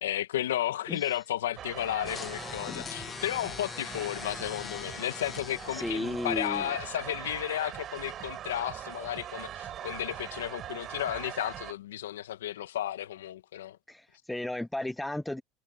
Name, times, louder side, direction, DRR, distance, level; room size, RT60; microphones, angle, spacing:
voice 1, 0.0-13.8, left 12 dB, 85° left, 1.6 m, -33 dB
sound 1, 1.6-11.7, right 11 dB, 45° right, 4.8 m, -42 dB
sound 2, 2.0-7.1, left 7 dB, 30° left, 1.5 m, -42 dB
voice 2, 5.7-6.7 13.9-15.4, left 1 dB, 5° left, 0.7 m, -34 dB
hypercardioid pair, 95°, 0 cm